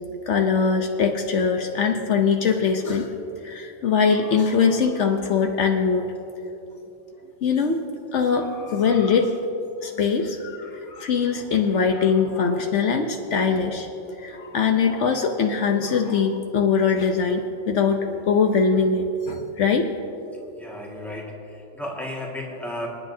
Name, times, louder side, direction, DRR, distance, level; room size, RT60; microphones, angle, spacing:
voice 1, 0.3-3.1 3.4-6.1 7.4-7.8 8.1-9.3 9.8-13.9 14.2-19.9, left 5 dB, 70° left, 4 dB, 1.1 m, -22 dB
voice 2, 20.6-22.9, left 1 dB, ahead, -3 dB, 1.8 m, -34 dB
26.5 x 10.0 x 2.7 m, 2.9 s
omnidirectional pair, 1.3 m